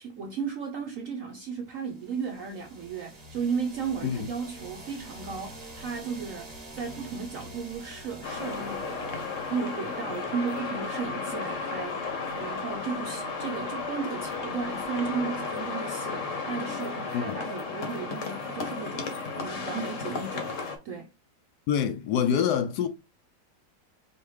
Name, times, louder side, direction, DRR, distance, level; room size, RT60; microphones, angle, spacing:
voice 1, 0.0-9.2 9.5-21.1, right 6 dB, 65° right, 0.8 m, -35 dB
sound 1, 1.8-10.6, right 1 dB, 25° right, 1.0 m, -47 dB
sound 2, 5.2-15.3, left 1 dB, 20° left, 0.5 m, -53 dB
sound 3, 8.2-20.8, left 4 dB, 50° left, 1.1 m, -34 dB
voice 2, 21.7-22.9, left 8 dB, 75° left, 1.0 m, -26 dB
4.6 x 2.8 x 3.1 m
omnidirectional pair, 2.0 m